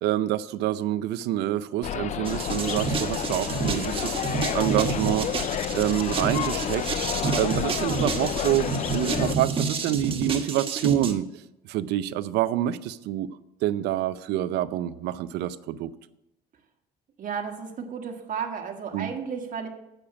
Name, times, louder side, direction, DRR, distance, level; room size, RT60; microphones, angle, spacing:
voice 1, 0.0-6.9 7.4-8.7 8.9-13.3 13.6-15.9 18.9-19.1, right 13 dB, 80° right, 15 dB, 0.5 m, -27 dB
sound 1, 1.8-9.4, left 10 dB, 45° left, 0.4 m, -30 dB
sound 2, 2.3-11.1, right 5 dB, 30° right, 1.3 m, -29 dB
voice 2, 17.2-19.7, right 6 dB, 50° right, 3 dB, 1.6 m, -33 dB
8.5 x 6.6 x 5.8 m, 0.93 s
cardioid pair, 110°, 17 cm